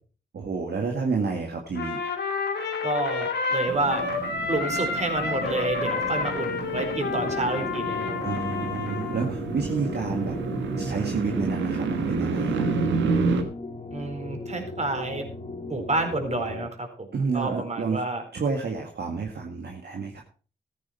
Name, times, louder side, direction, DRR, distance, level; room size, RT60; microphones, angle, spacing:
voice 1, 0.3-2.0 8.2-10.4 10.8-12.6 17.1-18.0 18.3-20.2, right 4 dB, 60° right, 2 dB, 2.0 m, -29 dB
Trumpet, 1.7-9.3, left 4 dB, 65° left, 2.3 m, -30 dB
voice 2, 2.8-4.1 4.5-8.3 13.9-15.3 15.7-17.1 17.3-18.2, right 2 dB, 35° right, 5 dB, 4.4 m, -29 dB
sound 1, 3.7-13.4, right 4 dB, 80° right, 1.6 m, -30 dB
sound 2, 7.0-16.7, left 3 dB, 35° left, 2.3 m, -37 dB
14.0 x 9.3 x 4.5 m, 0.39 s
supercardioid pair, 40°, 19 cm